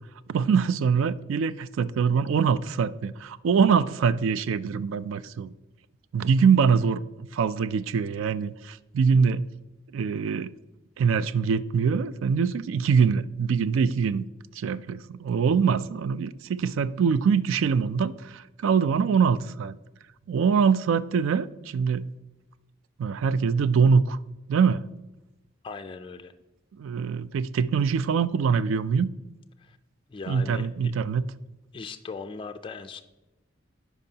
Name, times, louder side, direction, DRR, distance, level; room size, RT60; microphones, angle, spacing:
voice 1, 0.3-5.5 6.1-9.5 9.9-10.5 11.0-14.2 14.6-19.8 20.3-22.1 23.0-24.2 24.5-24.9 26.8-29.1 30.3-31.2, right 6 dB, 75° right, 0.3 m, -24 dB
voice 2, 25.6-26.3 29.6-29.8 30.1-30.9 31.7-33.0, left 4 dB, 25° left, 0.3 m, -39 dB
10.5 x 4.8 x 2.8 m
head